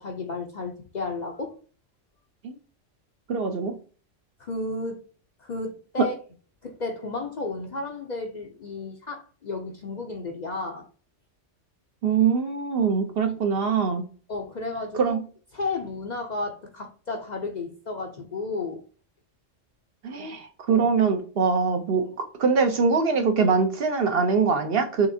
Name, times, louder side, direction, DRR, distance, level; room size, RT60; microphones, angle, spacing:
voice 1, 0.0-1.5 4.4-5.0 5.4-6.1 6.6-10.9 14.3-15.1 15.5-18.8 20.7-20.9, left 3 dB, 45° left, 0.6 m, -33 dB
voice 2, 3.3-3.8 6.0-6.1 12.0-14.1 14.9-15.2 20.0-25.1, right 5 dB, 60° right, 0.8 m, -23 dB
5.5 x 3.4 x 2.6 m
omnidirectional pair, 1.3 m